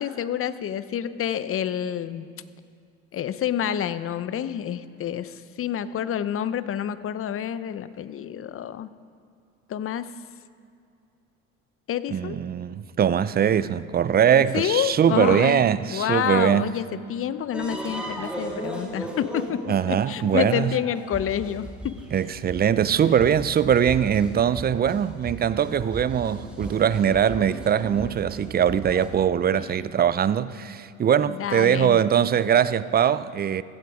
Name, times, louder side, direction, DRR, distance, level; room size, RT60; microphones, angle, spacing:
voice 1, 0.0-2.3 3.1-8.9 9.7-10.1 11.9-12.4 14.3-15.7 15.9-21.9 29.5-29.7 31.3-32.0, left 9 dB, 40° left, 0.8 m, -28 dB
voice 2, 12.1-16.7 19.7-20.8 22.1-33.6, right 8 dB, 30° right, 0.5 m, -21 dB
sound 1, 17.5-29.1, right 1 dB, 5° right, 2.9 m, -37 dB
15.5 x 15.0 x 5.0 m
supercardioid pair, 85°, 34 cm